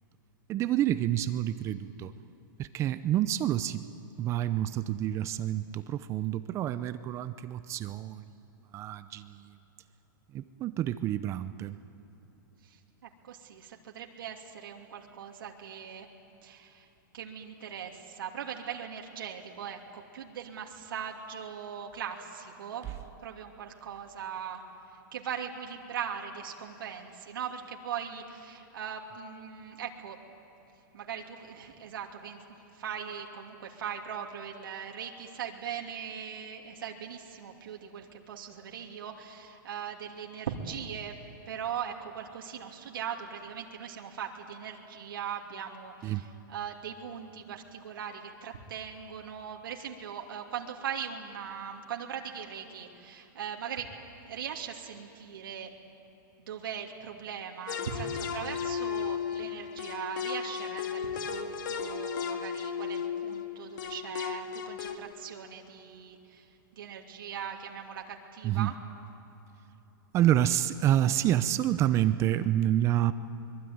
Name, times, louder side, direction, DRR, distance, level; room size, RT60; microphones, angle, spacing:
voice 1, 0.5-2.1 2.6-3.9 4.2-8.3 8.7-9.5 10.3-11.8 22.8-23.0 46.0-46.3 68.4-68.8 70.1-73.1, right 12 dB, 25° right, 13 dB, 0.6 m, -28 dB
voice 2, 12.6-16.1 16.4-16.9 17.1-22.9 23.2-24.6 24.9-30.2 30.9-32.4 32.7-41.2 41.5-53.9 54.3-55.7 56.4-68.8, right 8 dB, 85° right, 1 dB, 2.8 m, -40 dB
sound 1, 57.7-65.0, left 7 dB, 65° left, 2.0 m, -35 dB
24.5 x 22.5 x 9.4 m, 3.0 s
hypercardioid pair, 150°, 11 cm